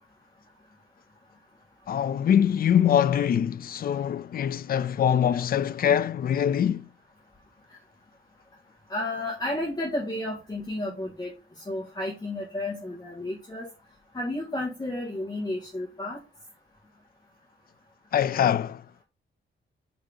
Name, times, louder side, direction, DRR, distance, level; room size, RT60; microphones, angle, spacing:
voice 1, 1.9-6.9 18.1-18.8, left 9 dB, 50° left, 0.4 m, -23 dB
voice 2, 8.9-11.3 11.7-13.7 14.1-16.2, left 1 dB, 20° left, 1.8 m, -32 dB
5.2 x 4.5 x 5.4 m
wide cardioid pair, 165°, 20 cm